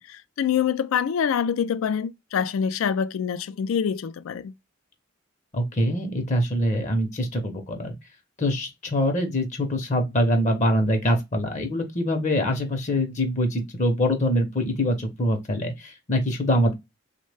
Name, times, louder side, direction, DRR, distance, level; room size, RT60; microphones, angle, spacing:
voice 1, 0.0-4.5, left 7 dB, 80° left, 0.3 m, -25 dB
voice 2, 5.5-7.9 8.4-16.7, equal, 35° left, 0.6 m, -24 dB
3.2 x 2.1 x 3.2 m
head